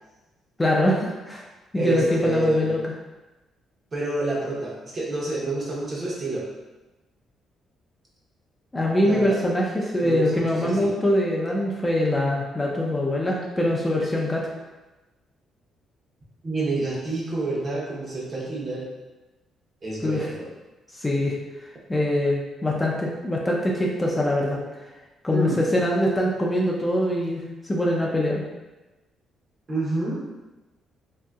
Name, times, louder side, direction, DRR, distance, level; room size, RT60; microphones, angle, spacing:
voice 1, 0.6-1.4 1.7-2.9 8.7-14.5 20.0-20.3 20.9-21.4 21.9-24.6 25.2-28.4, left 1 dB, 15° left, -3 dB, 0.4 m, -23 dB
voice 2, 1.8-2.8 3.9-6.5 9.0-9.4 10.0-10.9 16.4-18.9 19.8-20.5 25.3-25.6 29.7-30.1, right 2 dB, 40° right, -5 dB, 0.9 m, -28 dB
2.9 x 2.7 x 2.3 m, 1.1 s
cardioid pair, 90°, 0 cm